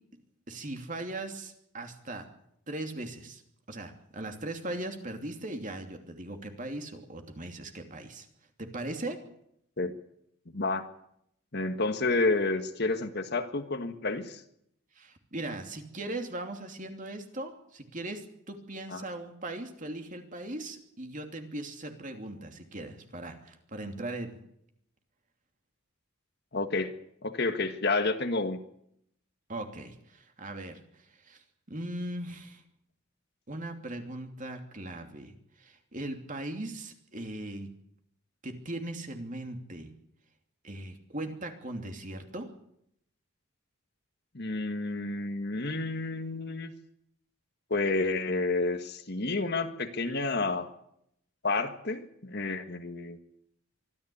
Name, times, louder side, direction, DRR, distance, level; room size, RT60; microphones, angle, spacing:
voice 1, 0.5-2.3 2.7-3.4 3.7-8.3 8.6-9.2 14.9-24.4 29.5-31.4 31.7-32.6 33.5-37.7 38.4-39.9 40.6-42.5, right 1 dB, 40° right, 5 dB, 2.9 m, -39 dB
voice 2, 10.5-10.8 11.5-14.4 18.9-19.0 26.5-26.9 27.2-28.6 44.3-46.7 47.7-50.7 51.4-53.2, left 3 dB, 55° left, 8 dB, 1.7 m, -30 dB
24.0 x 14.0 x 8.6 m, 0.73 s
head